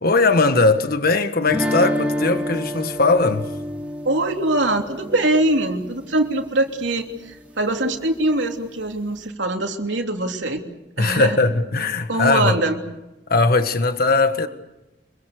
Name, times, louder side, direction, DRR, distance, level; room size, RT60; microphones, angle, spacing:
voice 1, 0.0-3.5 11.0-12.6 13.3-14.5, left 3 dB, 55° left, 1.6 m, -19 dB
sound 1, 1.5-6.4, equal, 5° right, 3.0 m, -28 dB
voice 2, 4.0-10.6 11.0-11.4 12.1-12.8, right 2 dB, 85° right, 3.2 m, -22 dB
27.0 x 23.0 x 6.8 m
head